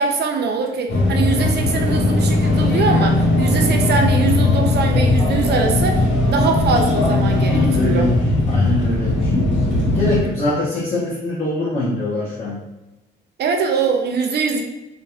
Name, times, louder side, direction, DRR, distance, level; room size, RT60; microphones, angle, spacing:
voice 1, 0.0-8.1 13.4-14.6, right 4 dB, 55° right, 3 dB, 0.5 m, -22 dB
sound 1, 0.9-10.2, left 2 dB, 70° left, 1.0 m, -18 dB
voice 2, 7.5-8.1 8.5-9.3 9.9-12.6, left 1 dB, 35° left, -7 dB, 0.8 m, -23 dB
3.0 x 2.6 x 2.3 m, 1.0 s
cardioid pair, 90°, 20 cm